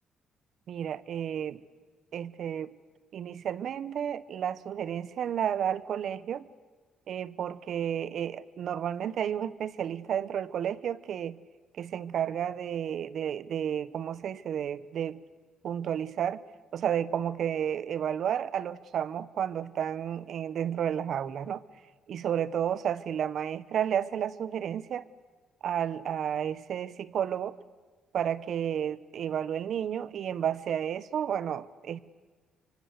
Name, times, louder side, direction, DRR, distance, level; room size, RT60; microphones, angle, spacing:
voice 1, 0.7-1.6 2.1-2.7 3.1-6.4 7.1-11.4 11.8-15.2 15.6-16.4 16.7-21.6 22.1-25.0 25.6-27.5 28.1-32.0, right 9 dB, 65° right, 18 dB, 1.0 m, -31 dB
26.0 x 24.5 x 8.2 m, 1.4 s
cardioid pair, 90°, 0 cm